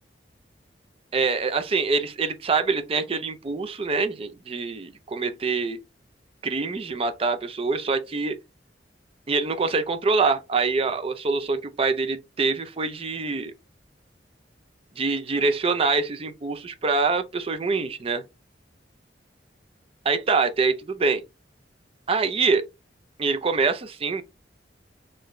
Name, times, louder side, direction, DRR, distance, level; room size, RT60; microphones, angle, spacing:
voice 1, 1.1-5.8 6.4-8.4 9.3-13.5 15.0-18.2 20.1-21.2 22.1-22.7 23.2-24.2, right 4 dB, 35° right, 0.4 m, -25 dB
3.9 x 2.6 x 3.0 m
head